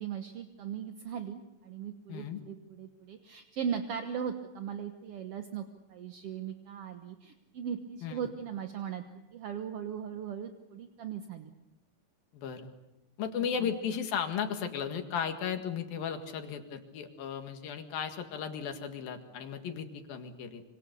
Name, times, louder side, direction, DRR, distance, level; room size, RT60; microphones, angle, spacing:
voice 1, 0.0-11.5 13.6-13.7, right 8 dB, 60° right, 6 dB, 1.7 m, -38 dB
voice 2, 2.1-2.4 8.0-8.2 12.3-12.7 13.2-20.6, left 7 dB, 85° left, 6 dB, 3.7 m, -35 dB
26.0 x 26.0 x 6.9 m, 0.98 s
omnidirectional pair, 4.0 m